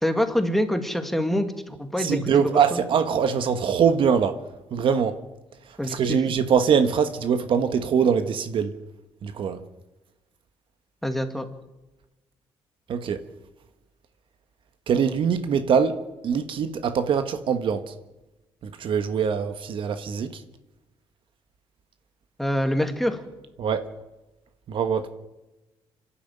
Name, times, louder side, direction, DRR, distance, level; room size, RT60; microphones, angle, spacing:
voice 1, 0.0-2.8 5.8-6.2 11.0-11.5 22.4-23.2, equal, ahead, 2.2 m, -25 dB
voice 2, 2.0-4.4 4.7-5.2 5.7-8.7 9.2-9.6 12.9-13.2 14.9-17.9 18.6-20.4 23.6-23.9 24.7-25.1, right 7 dB, 60° right, 1.4 m, -23 dB
26.0 x 11.5 x 9.1 m
cardioid pair, 95°, 10 cm